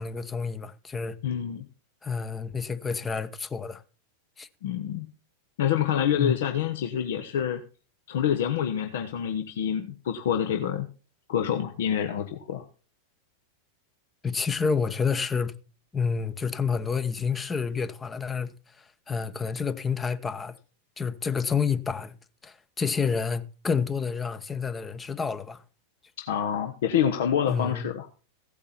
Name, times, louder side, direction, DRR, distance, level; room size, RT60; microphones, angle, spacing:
voice 1, 0.0-1.2 2.0-3.8 4.4-4.5 6.2-6.4 14.2-15.5 15.9-20.6 21.0-22.1 22.4-25.6 27.5-27.9, left 5 dB, 15° left, 0.9 m, -29 dB
voice 2, 1.2-1.7 4.6-5.1 5.6-7.6 8.1-10.9 11.3-12.6 26.2-28.1, left 9 dB, 55° left, 1.1 m, -27 dB
16.0 x 8.5 x 4.3 m
figure-of-eight pair, 90°, 0 cm